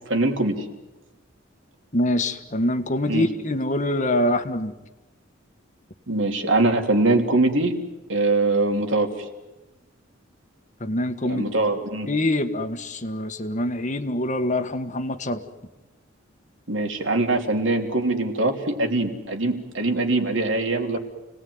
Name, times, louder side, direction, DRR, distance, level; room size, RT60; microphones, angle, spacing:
voice 1, 0.1-0.6 3.1-3.3 6.1-7.7 8.1-9.1 11.2-12.1 16.7-21.0, right 2 dB, 70° right, 4 dB, 3.3 m, -22 dB
voice 2, 1.9-4.7 10.8-11.4 12.1-15.4, left 1 dB, 40° left, 8 dB, 1.7 m, -25 dB
30.0 x 19.5 x 9.6 m, 1.1 s
head